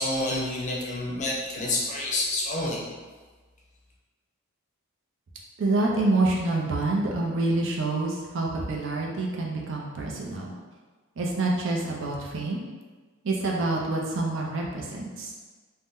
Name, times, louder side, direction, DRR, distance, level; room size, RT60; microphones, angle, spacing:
voice 1, 0.0-2.8, left 2 dB, 35° left, -3 dB, 0.5 m, -28 dB
voice 2, 5.6-10.5 11.2-12.6 13.2-15.3, right 2 dB, 60° right, -2 dB, 0.5 m, -27 dB
2.6 x 2.1 x 3.6 m, 1.4 s
head